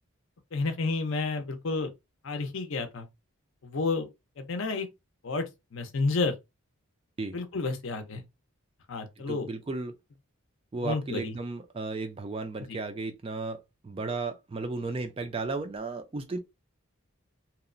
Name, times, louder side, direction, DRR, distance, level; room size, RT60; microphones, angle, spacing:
voice 1, 0.5-1.9 2.2-3.1 3.6-4.1 4.4-4.9 5.2-6.3 7.3-8.2 8.9-9.5 10.8-11.3 12.7-12.8, left 3 dB, 60° left, 0.5 m, -30 dB
voice 2, 9.3-9.9 10.7-16.4, right 3 dB, 25° right, 0.3 m, -34 dB
2.8 x 2.0 x 2.4 m
head